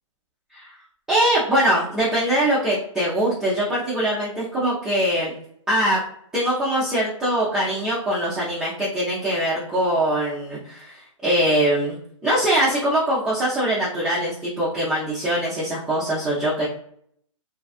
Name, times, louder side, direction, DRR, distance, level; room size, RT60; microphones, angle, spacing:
voice 1, 1.1-5.3 5.7-6.0 6.3-12.0 12.2-16.7, right 1 dB, 5° right, -10 dB, 0.5 m, -22 dB
2.6 x 2.2 x 2.3 m, 0.67 s
hypercardioid pair, 145°, 17 cm